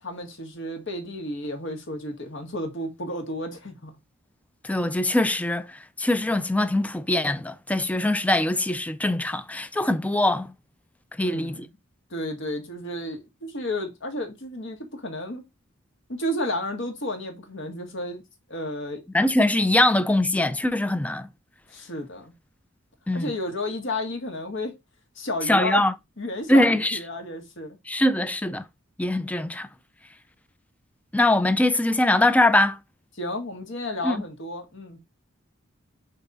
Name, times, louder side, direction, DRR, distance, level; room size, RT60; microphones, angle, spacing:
voice 1, 0.0-3.9 11.2-11.6 12.1-15.5 16.1-19.0 21.7-22.3 23.1-24.8 25.1-25.8 26.2-27.8 33.2-35.0, left 1 dB, 65° left, 1.8 m, -32 dB
voice 2, 4.6-10.5 11.2-11.6 19.1-21.3 23.1-23.3 25.5-25.9 26.5-27.0 27.9-28.6 29.0-29.7 31.1-32.8 34.0-34.2, left 1 dB, 5° left, 0.5 m, -22 dB
5.7 x 4.0 x 4.1 m
head